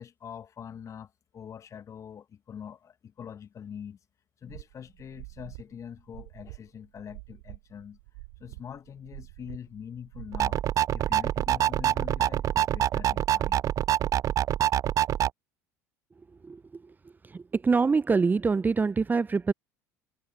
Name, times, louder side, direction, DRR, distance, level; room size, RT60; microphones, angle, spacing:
voice 1, 0.0-4.0 4.4-8.0 8.4-10.6 10.9-13.6, left 8 dB, 35° left, 1.9 m, -44 dB
sound 1, 4.5-10.9, right 34 dB, 65° right, 3.3 m, -47 dB
sound 2, 10.3-15.3, right 11 dB, 40° right, 0.4 m, -25 dB
voice 2, 17.3-19.5, right 4 dB, 20° right, 0.8 m, -24 dB
figure-of-eight pair, 65°, 9 cm